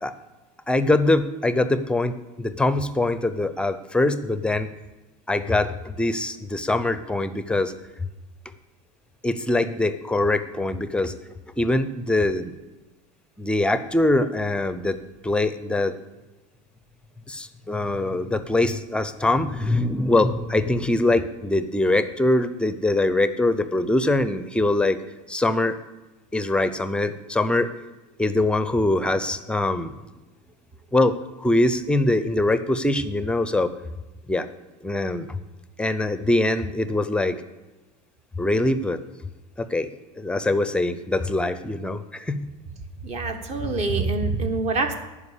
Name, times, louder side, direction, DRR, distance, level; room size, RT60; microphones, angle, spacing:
voice 1, 0.7-4.7 5.3-7.7 9.2-11.1 11.6-12.5 13.4-15.0 15.2-16.0 17.3-25.0 25.3-25.8 26.3-27.7 28.2-29.9 30.9-33.7 34.3-34.5 34.8-35.4 35.8-37.4 38.4-39.0 39.6-39.9 40.2-42.5, left 2 dB, 5° left, 12 dB, 0.6 m, -23 dB
voice 2, 43.0-44.9, right 3 dB, 40° right, 6 dB, 1.4 m, -25 dB
10.5 x 5.1 x 8.3 m, 1.1 s
supercardioid pair, 115°, 17 cm